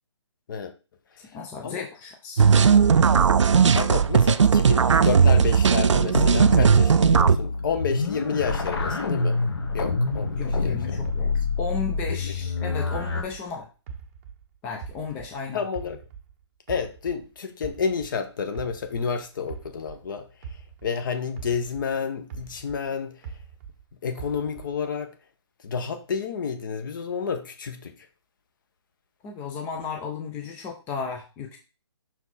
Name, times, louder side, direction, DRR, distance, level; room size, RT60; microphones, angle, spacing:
voice 1, 1.3-2.4 10.4-13.7 14.6-15.6 29.2-31.6, left 5 dB, 10° left, 0.4 m, -34 dB
sound 1, 2.4-7.4, right 6 dB, 85° right, 0.5 m, -17 dB
voice 2, 3.7-9.5 9.7-11.3 12.1-12.3 15.5-16.0 16.7-20.5 20.8-23.4 24.0-25.1 25.6-28.1, left 6 dB, 45° left, 1.0 m, -30 dB
sound 2, 6.1-13.2, left 3 dB, 60° left, 1.7 m, -27 dB
sound 3, 10.1-13.5 13.9-16.3 16.7-21.0 21.4-23.8 24.2-24.9, right 6 dB, 30° right, 0.7 m, -42 dB
5.9 x 4.5 x 4.1 m
hypercardioid pair, 155°, 15 cm